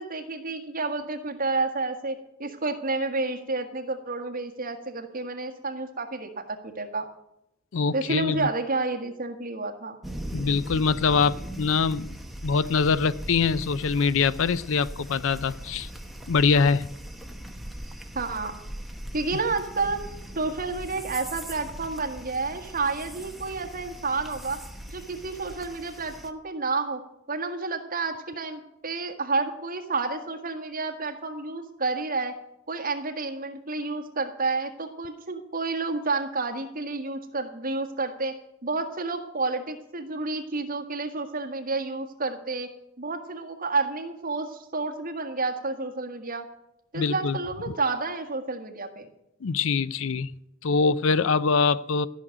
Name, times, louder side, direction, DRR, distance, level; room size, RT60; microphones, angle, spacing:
voice 1, 0.0-7.1 7.9-10.0 18.1-18.5 19.1-20.0 20.3-24.6 24.9-27.0 27.3-32.3 32.7-38.3 38.6-42.7 43.0-46.4 46.9-49.1, right 3 dB, 45° right, 5 dB, 1.7 m, -30 dB
voice 2, 7.7-8.5 10.3-12.2 12.4-15.9 16.3-16.9 46.9-47.4 49.4-50.3 50.6-52.1, left 5 dB, 65° left, 17 dB, 0.5 m, -23 dB
sound 1, 10.0-26.3, right 1 dB, ahead, 1.0 m, -40 dB
14.5 x 6.5 x 9.1 m, 0.84 s
head